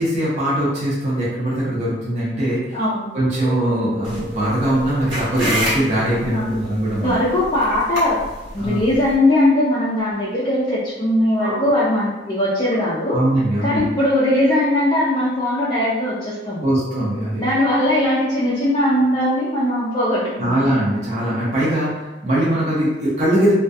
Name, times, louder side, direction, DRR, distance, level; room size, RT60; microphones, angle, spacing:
voice 1, 0.0-2.8 3.1-7.2 8.6-8.8 11.4-11.6 13.1-13.8 16.6-17.4 20.4-23.5, right 1 dB, 35° right, -8 dB, 0.6 m, -21 dB
voice 2, 2.7-3.1 6.3-6.6 6.9-8.2 8.5-13.2 13.6-16.7 17.4-20.6, left 1 dB, 25° left, -8 dB, 0.4 m, -20 dB
sound 1, 3.2-14.7 19.0-19.1, right 1 dB, 5° left, 0.8 m, -41 dB
sound 2, 4.0-9.1, right 1 dB, 75° right, 1.1 m, -29 dB
2.3 x 2.2 x 2.6 m, 1.1 s
head